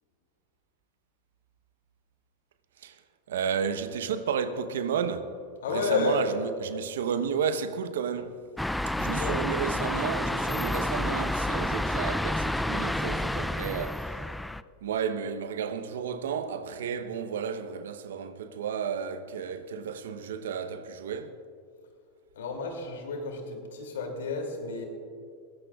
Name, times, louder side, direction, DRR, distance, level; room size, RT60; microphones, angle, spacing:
voice 1, 3.3-5.3 5.7-8.4 9.0-14.2 14.8-21.4, right 7 dB, 80° right, 0.9 m, -32 dB
voice 2, 5.6-6.2 9.0-9.4 22.3-24.8, left 4 dB, 85° left, 2.6 m, -31 dB
sound 1, 8.6-14.6, left 1 dB, 5° left, 0.3 m, -29 dB
22.0 x 17.0 x 2.4 m
hypercardioid pair, 100°, 0 cm